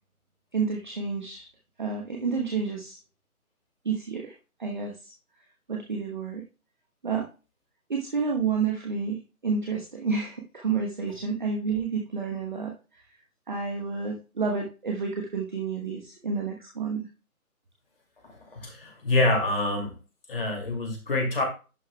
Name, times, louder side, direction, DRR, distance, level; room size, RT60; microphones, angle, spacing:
voice 1, 0.5-1.5 1.8-3.0 3.8-4.3 4.6-5.0 5.7-6.5 7.0-7.3 7.9-12.8 13.5-17.1, right 5 dB, 35° right, 1.1 m, -30 dB
voice 2, 18.2-20.0 20.3-21.4, left 2 dB, 40° left, 2.4 m, -26 dB
11.0 x 5.3 x 2.2 m
figure-of-eight pair, 160°, 44 cm